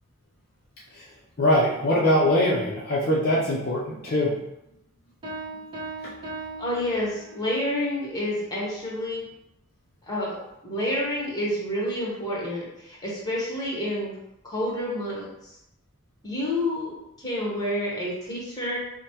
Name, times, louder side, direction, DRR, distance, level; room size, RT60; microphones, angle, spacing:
voice 1, 1.4-4.4, left 1 dB, 45° left, -6 dB, 0.5 m, -22 dB
Piano, 5.2-7.6, right 2 dB, 25° right, 1.0 m, -38 dB
voice 2, 6.6-9.2 10.0-10.4 10.6-14.1 14.4-15.3 16.2-18.8, left 1 dB, 15° left, -5 dB, 1.0 m, -29 dB
5.0 x 2.1 x 2.9 m, 0.86 s
head